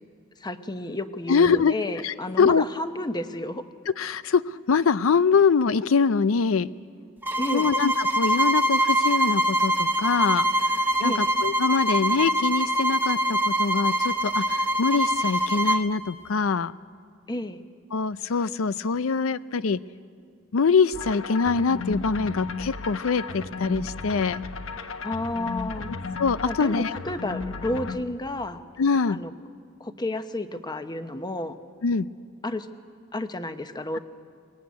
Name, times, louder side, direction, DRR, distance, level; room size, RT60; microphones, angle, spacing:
voice 1, 0.4-3.6 7.4-7.7 11.0-11.3 17.3-17.6 25.0-25.9 26.4-28.6 29.1-29.3 29.8-31.6 32.4-32.7 33.1-34.0, left 1 dB, 20° left, 9 dB, 0.9 m, -31 dB
voice 2, 1.3-1.7 2.0-2.6 3.9-6.7 7.5-16.7 17.9-19.8 20.5-24.4 25.9-26.9 28.8-29.2 31.8-32.1, left 5 dB, 90° left, 15 dB, 0.5 m, -24 dB
sound 1, 7.2-15.9, right 1 dB, 10° right, 1.1 m, -24 dB
sound 2, 20.9-28.0, left 4 dB, 70° left, 1.1 m, -34 dB
23.0 x 20.0 x 9.5 m, 2.2 s
head